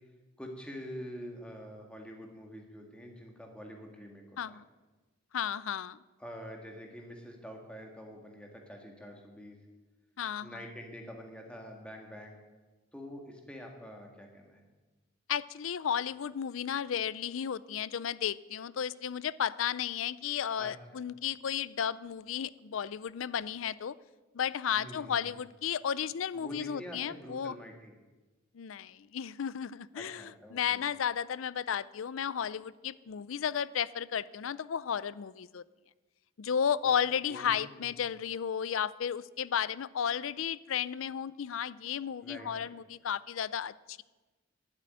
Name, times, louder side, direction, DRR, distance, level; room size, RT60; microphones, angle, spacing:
voice 1, 0.4-4.6 6.2-9.6 10.4-12.4 12.9-14.6 20.6-20.7 24.7-25.3 26.3-27.9 30.0-30.8 37.3-37.9 42.2-42.8, equal, 5° left, 1 dB, 2.0 m, -46 dB
voice 2, 5.3-6.0 10.2-10.6 15.3-24.0 24.3-27.6 28.5-35.6 36.4-44.0, left 8 dB, 80° left, 19 dB, 0.4 m, -33 dB
12.0 x 7.6 x 9.9 m, 1.2 s
head